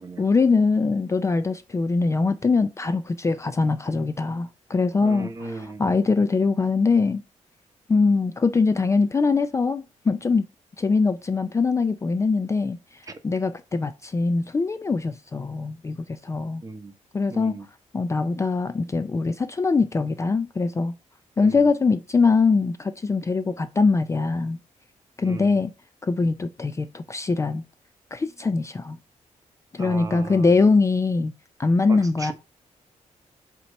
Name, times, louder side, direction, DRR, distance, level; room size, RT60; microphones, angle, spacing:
voice 1, 0.2-7.2 7.9-10.5 10.8-12.8 13.2-16.6 17.1-17.6 17.9-20.9 21.4-24.6 25.2-25.7 26.0-27.6 28.1-29.0 29.7-31.3 31.6-32.3, left 4 dB, 25° left, 0.4 m, -22 dB
voice 2, 5.0-5.8 13.1-13.2 16.6-16.9 17.3-17.7 21.4-21.7 25.2-25.6 29.8-30.5 31.9-32.3, right 3 dB, 25° right, 0.9 m, -36 dB
8.2 x 2.9 x 5.3 m
wide cardioid pair, 165°, 13 cm